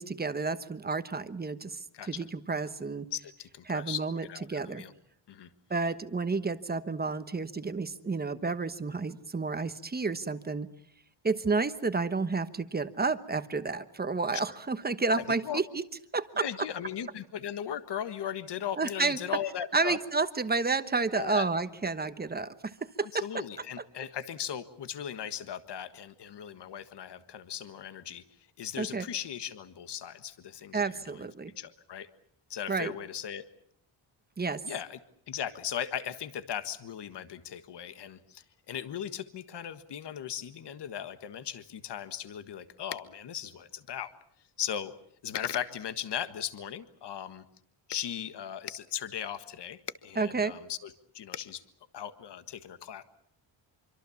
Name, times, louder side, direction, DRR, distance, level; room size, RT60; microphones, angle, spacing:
voice 1, 0.0-3.1 3.7-4.8 5.7-10.7 11.2-15.8 16.1-16.4 18.8-19.2 19.7-23.2 28.8-29.0 30.7-31.5 32.7-32.9 34.4-34.6 50.2-50.5, right 4 dB, 20° right, 11 dB, 1.1 m, -31 dB
voice 2, 1.9-2.2 3.1-4.9 5.3-5.5 14.3-14.4 15.0-15.6 16.4-20.0 21.1-21.5 23.0-28.2 28.6-32.1 32.5-33.4 34.6-35.0 35.3-44.1 44.6-44.9 45.2-47.4 47.9-51.6 51.9-53.0, left 9 dB, 55° left, 11 dB, 1.7 m, -38 dB
26.0 x 25.0 x 7.2 m, 0.69 s
wide cardioid pair, 165°, 48 cm